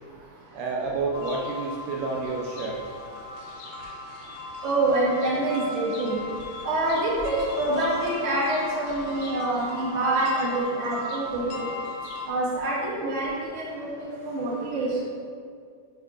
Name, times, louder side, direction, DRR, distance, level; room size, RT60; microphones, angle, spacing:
voice 1, 0.5-2.8, right 3 dB, 80° right, -1 dB, 1.6 m, -29 dB
sound 1, 1.1-12.3, left 2 dB, 75° left, 1.8 m, -37 dB
voice 2, 4.6-6.2 6.6-11.6 12.3-15.0, right 2 dB, 55° right, -6 dB, 0.8 m, -26 dB
5.0 x 4.4 x 4.7 m, 2.2 s
omnidirectional pair, 3.4 m